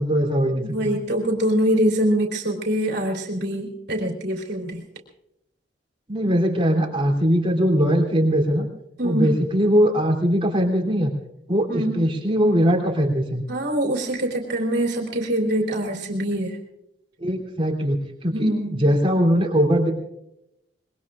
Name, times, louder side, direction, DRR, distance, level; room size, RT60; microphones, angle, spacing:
voice 1, 0.0-1.0 6.1-8.7 9.0-11.1 11.5-13.4 17.2-19.9, equal, 30° right, 1 dB, 3.1 m, -21 dB
voice 2, 0.5-4.8 9.0-9.4 11.7-12.0 13.5-16.6 18.3-18.8, right 1 dB, 60° right, -1 dB, 3.5 m, -24 dB
25.5 x 22.5 x 2.5 m, 0.82 s
head